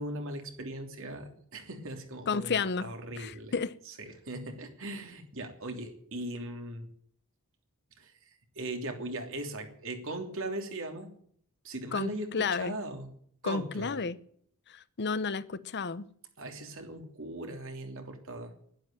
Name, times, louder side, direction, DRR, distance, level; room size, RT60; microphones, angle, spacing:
voice 1, 0.0-3.5 3.9-6.9 8.0-8.1 8.5-11.1 11.6-13.1 13.4-14.0 16.4-18.5, right 1 dB, 65° right, 3.1 m, -39 dB
voice 2, 2.3-2.9 3.2-3.8 11.9-12.7 13.4-14.2 14.7-16.1, left 5 dB, 50° left, 0.8 m, -32 dB
11.5 x 11.5 x 8.8 m
head